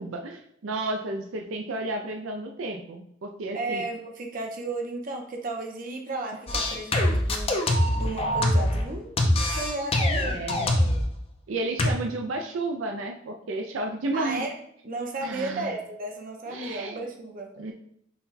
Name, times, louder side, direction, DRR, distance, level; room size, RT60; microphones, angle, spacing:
voice 1, 0.0-3.8 10.2-10.7 11.5-14.5 15.2-15.7 16.5-17.0 17.5-17.7, right 2 dB, 80° right, 3 dB, 0.5 m, -32 dB
voice 2, 3.5-7.7 7.9-9.2 9.5-10.4 14.1-14.5 14.8-17.5, right 2 dB, 45° right, 2 dB, 0.7 m, -34 dB
sound 1, 6.5-8.9 9.2-11.1 11.8-11.9, left 1 dB, 30° left, 0.5 m, -23 dB
5.8 x 2.2 x 4.0 m, 0.73 s
head